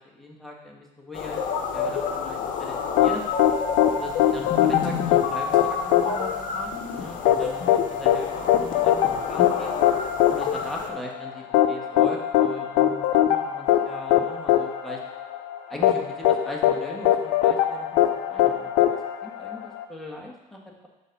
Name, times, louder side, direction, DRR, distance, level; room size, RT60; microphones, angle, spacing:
voice 1, 0.2-1.4 1.7-2.0 2.2-3.2 3.9-9.7 10.3-15.0 15.7-17.9 18.3-18.9 19.2-20.9, left 1 dB, ahead, -3 dB, 1.6 m, -39 dB
sound 1, 1.1-10.9, left 6 dB, 55° left, 1.0 m, -30 dB
sound 2, 3.0-19.8, left 12 dB, 80° left, 0.6 m, -22 dB
6.4 x 4.2 x 5.3 m, 1.0 s
supercardioid pair, 90°, 17 cm